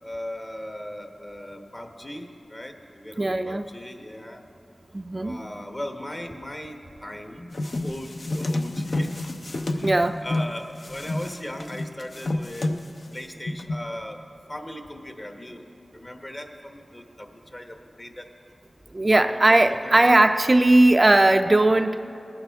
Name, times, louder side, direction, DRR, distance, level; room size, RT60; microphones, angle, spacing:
voice 1, 0.0-4.4 5.2-9.1 9.6-12.8 13.1-14.2 14.5-15.6 15.9-18.3 19.1-20.0, left 1 dB, 30° left, 4 dB, 1.1 m, -38 dB
voice 2, 3.2-3.7 4.9-5.4 9.8-10.3 18.9-22.2, right 2 dB, 35° right, 8 dB, 0.4 m, -18 dB
sound 1, 7.5-10.5 10.8-13.1 13.5-13.8, left 2 dB, 60° left, 0.6 m, -29 dB
20.0 x 11.0 x 3.5 m, 2.9 s
wide cardioid pair, 65°, 0 cm